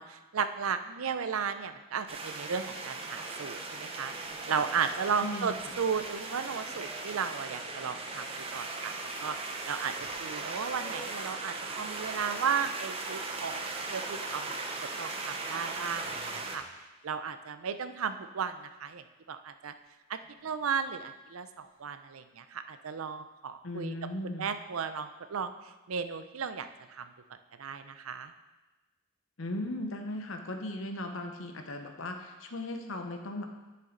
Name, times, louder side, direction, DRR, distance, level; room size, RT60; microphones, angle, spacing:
voice 1, 0.0-8.3 8.5-8.9 9.2-9.4 9.7-16.6 17.0-19.7 20.1-23.9 24.2-25.5 25.9-28.3, right 6 dB, 80° right, 10 dB, 0.5 m, -35 dB
sound 1, 2.1-16.6, right 3 dB, 25° right, 0.8 m, -38 dB
sound 2, 4.1-7.9 8.5-8.6 9.2-9.3 9.7-11.4 13.3-13.4 14.1-14.2 14.5-16.7 19.7-19.8 20.2-20.6 21.6-21.7, equal, 45° left, 2.3 m, -52 dB
voice 2, 5.2-5.5 23.6-24.5 29.4-33.5, left 1 dB, 70° left, 5 dB, 0.9 m, -37 dB
9.9 x 6.7 x 3.9 m, 1.1 s
head